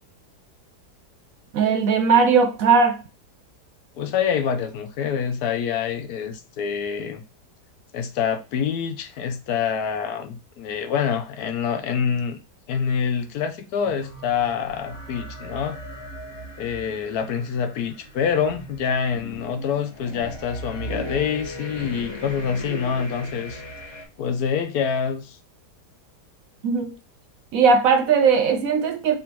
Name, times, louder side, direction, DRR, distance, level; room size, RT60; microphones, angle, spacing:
voice 1, 1.5-3.0 26.6-27.0 27.5-29.2, right 5 dB, 70° right, 0.9 m, -18 dB
voice 2, 4.0-7.2 7.9-12.4 12.7-15.8 16.6-23.6 24.2-25.4, left 7 dB, 75° left, 1.0 m, -26 dB
sound 1, 13.8-24.0, equal, 25° left, 0.7 m, -37 dB
3.4 x 2.6 x 4.4 m
omnidirectional pair, 1.8 m